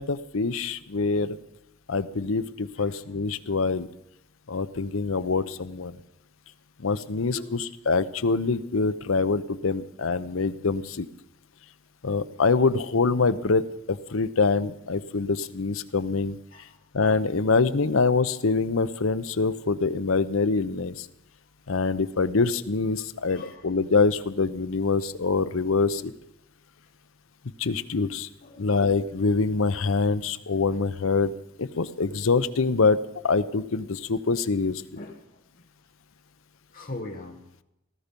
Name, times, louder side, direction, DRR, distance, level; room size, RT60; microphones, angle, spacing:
voice 1, 0.0-1.4 1.9-3.9 4.5-6.0 6.8-11.1 12.0-13.6 13.9-16.4 16.9-21.1 21.7-26.1 27.6-28.3 28.6-31.3 31.6-34.8, left 4 dB, 75° left, 14 dB, 0.7 m, -25 dB
voice 2, 2.8-3.1 5.4-5.5 7.3-7.7 16.5-16.8 21.5-21.9 23.3-23.7 28.4-28.8 35.0-35.7 36.7-37.4, left 2 dB, 40° left, 0 dB, 1.3 m, -42 dB
18.0 x 14.5 x 5.3 m, 0.82 s
head